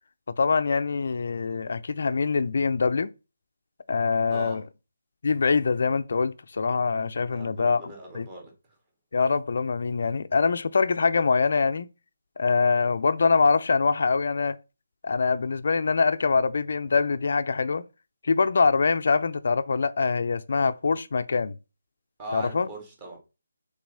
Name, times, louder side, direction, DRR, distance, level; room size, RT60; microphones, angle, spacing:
voice 1, 0.4-3.1 3.9-4.6 5.2-8.3 9.1-11.9 12.4-14.6 15.0-17.8 18.2-21.6 22.3-22.7, left 4 dB, 50° left, 0.6 m, -24 dB
voice 2, 4.3-4.6 7.3-8.5 22.2-23.2, right 2 dB, 15° right, 2.3 m, -39 dB
6.1 x 4.0 x 5.6 m
hypercardioid pair, 170°, 0 cm